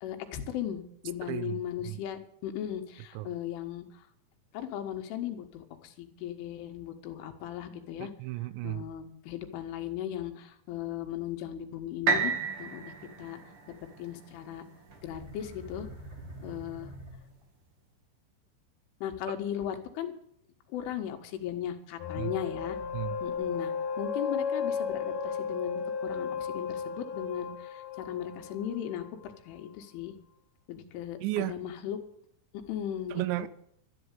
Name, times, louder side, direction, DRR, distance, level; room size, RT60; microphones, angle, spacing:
voice 1, 0.0-3.9 4.5-8.1 8.6-12.3 12.6-13.4 14.0-14.7 15.0-15.9 16.4-16.9 19.0-20.1 20.7-22.8 23.2-30.2 30.7-32.0 32.5-33.5, left 10 dB, 90° left, 5 dB, 4.0 m, -37 dB
voice 2, 1.2-1.6 1.9-2.0 3.2-3.3 8.0-8.8 22.2-22.3 22.9-23.2 31.2-31.6 33.1-33.5, right 17 dB, 80° right, 16 dB, 2.9 m, -33 dB
sound 1, 12.1-16.0 16.6-16.7, right 5 dB, 45° right, 1.9 m, -33 dB
sound 2, 14.9-17.7, right 1 dB, 25° right, 1.1 m, -46 dB
sound 3, 22.0-29.3, left 6 dB, 60° left, 3.0 m, -34 dB
12.5 x 12.0 x 8.3 m, 0.68 s
omnidirectional pair, 5.4 m